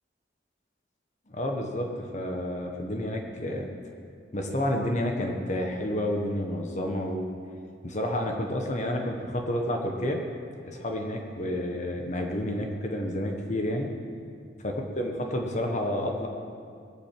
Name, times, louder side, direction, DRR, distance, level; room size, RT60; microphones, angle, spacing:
voice 1, 1.3-3.7 4.3-7.3 7.8-10.2 10.6-13.9 14.6-16.3, left 1 dB, 40° left, 2 dB, 1.4 m, -30 dB
19.5 x 9.2 x 7.7 m, 2.3 s
head